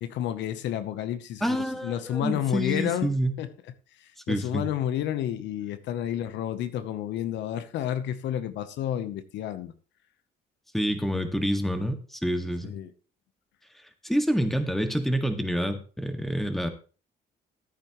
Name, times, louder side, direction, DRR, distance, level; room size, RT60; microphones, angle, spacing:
voice 1, 0.0-3.1 3.4-3.5 4.0-9.7 11.0-11.2 12.6-12.9, left 11 dB, 80° left, 0.9 m, -30 dB
voice 2, 1.4-3.3 4.3-4.6 10.7-12.7 14.0-16.7, equal, ahead, 1.8 m, -27 dB
14.0 x 8.7 x 3.0 m
cardioid pair, 90°, 18 cm